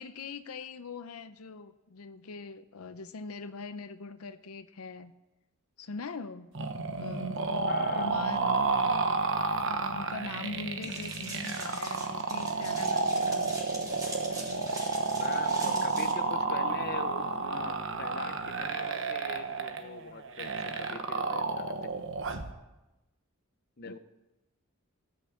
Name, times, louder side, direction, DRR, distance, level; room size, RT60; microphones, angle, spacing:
voice 1, 0.0-5.1 5.8-6.5 6.9-7.5 8.0-8.5 9.7-13.5 15.6-16.2 23.9-24.0, left 4 dB, 85° left, 11 dB, 0.6 m, -42 dB
sound 1, 6.5-22.5, right 4 dB, 60° right, 1.1 m, -31 dB
voice 2, 7.7-8.8 10.8-11.0 15.1-22.1 23.8-24.0, left 4 dB, 45° left, 9 dB, 0.8 m, -43 dB
sound 2, 10.8-16.1, right 1 dB, 15° right, 3.4 m, -43 dB
17.0 x 6.5 x 8.4 m, 1.0 s
head